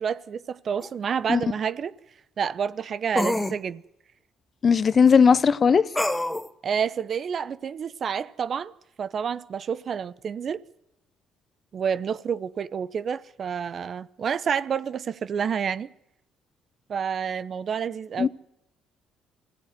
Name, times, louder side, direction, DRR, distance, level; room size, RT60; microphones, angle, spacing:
voice 1, 0.0-1.9 2.4-3.8 6.6-8.7 9.0-10.6 11.7-15.9 16.9-18.3, right 7 dB, 50° right, 0.8 m, -29 dB
sound 1, 0.8-0.9 3.2-3.6 6.0-6.5, left 1 dB, 10° left, 1.0 m, -25 dB
voice 2, 4.6-5.9 18.2-18.3, left 6 dB, 40° left, 0.8 m, -17 dB
24.0 x 16.5 x 9.4 m
supercardioid pair, 80°, 0 cm